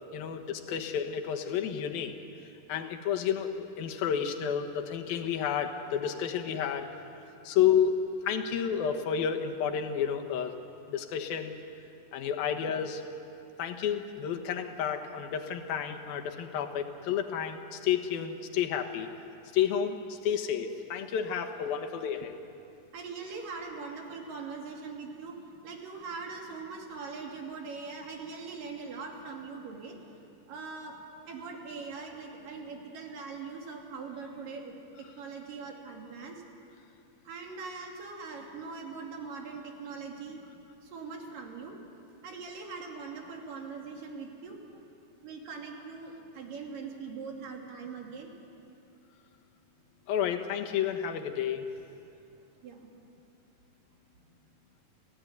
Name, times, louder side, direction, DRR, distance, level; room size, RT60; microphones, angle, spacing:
voice 1, 0.1-2.1 2.7-6.9 7.4-10.6 10.9-11.6 12.1-13.0 13.6-19.1 19.5-22.4 50.1-51.7, left 8 dB, 90° left, 4 dB, 3.2 m, -30 dB
voice 2, 22.9-25.4 25.6-30.1 30.5-31.0 31.3-36.4 37.3-40.4 40.8-41.8 42.2-44.8 45.2-48.3 52.6-52.9 54.2-54.4, right 4 dB, 70° right, 1 dB, 4.3 m, -41 dB
30.0 x 16.5 x 9.6 m, 2.8 s
omnidirectional pair, 4.1 m